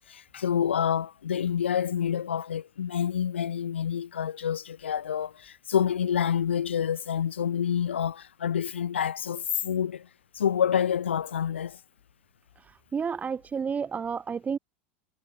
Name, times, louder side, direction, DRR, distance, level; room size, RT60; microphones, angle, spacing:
voice 1, 0.1-10.1 10.3-11.8, left 8 dB, 80° left, 1.2 m, -28 dB
voice 2, 12.9-14.6, right 6 dB, 25° right, 3.0 m, -30 dB
hypercardioid pair, 80°, 6 cm